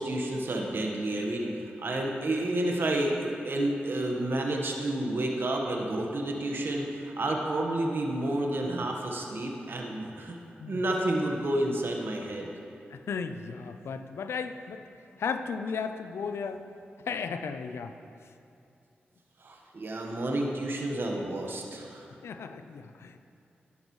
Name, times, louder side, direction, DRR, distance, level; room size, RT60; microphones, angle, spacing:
voice 1, 0.0-10.4 10.7-12.5 19.4-22.1, right 1 dB, 60° right, 0 dB, 1.3 m, -30 dB
voice 2, 12.9-14.8 15.2-16.6 17.0-17.9 22.2-23.2, left 5 dB, 80° left, 9 dB, 0.5 m, -35 dB
13.0 x 11.0 x 3.2 m, 2.6 s
cardioid pair, 45°, 4 cm